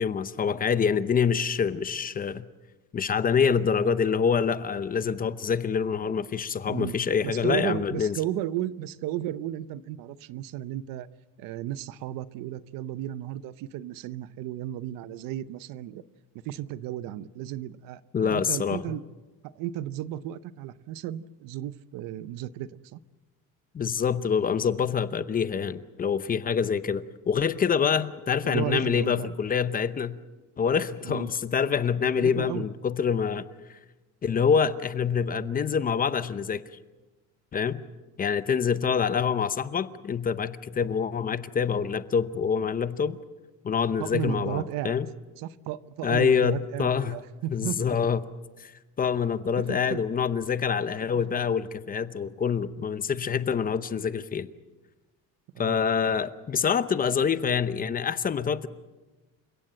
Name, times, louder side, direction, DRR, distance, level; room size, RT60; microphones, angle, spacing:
voice 1, 0.0-2.4 2.9-8.2 18.1-18.8 23.7-30.2 30.6-33.8 34.2-36.6 37.5-37.8 38.2-43.2 43.6-45.1 46.0-47.2 47.5-48.2 48.6-48.7 49.0-54.5 55.6-58.7, left 6 dB, 25° left, 14 dB, 0.8 m, -26 dB
voice 2, 7.2-11.1 11.4-16.0 16.4-18.0 18.3-19.0 19.6-23.0 28.4-29.3 31.0-31.3 32.1-32.7 44.0-44.9 45.4-48.0 49.6-50.0 51.3-51.4 55.5-55.8, right 12 dB, 75° right, 16 dB, 0.8 m, -34 dB
29.0 x 16.5 x 7.8 m, 1.2 s
cardioid pair, 150°, 33 cm